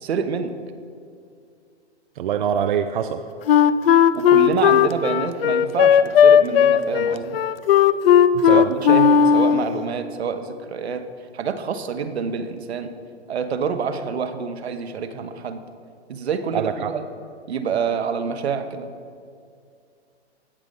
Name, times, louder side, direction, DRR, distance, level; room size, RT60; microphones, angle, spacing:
voice 1, 0.0-0.5 4.1-7.4 8.4-11.0 11.3-12.9 13.3-15.6 16.1-17.1 17.5-18.9, right 6 dB, 65° right, 8 dB, 1.1 m, -27 dB
voice 2, 2.2-3.2 8.4-8.7 16.5-16.9, right 8 dB, 50° right, 8 dB, 0.5 m, -24 dB
Wind instrument woodwind instrument, 3.5-9.8, left 8 dB, 55° left, 0.5 m, -15 dB
16.5 x 6.2 x 5.2 m, 2.3 s
hypercardioid pair, 125°, 34 cm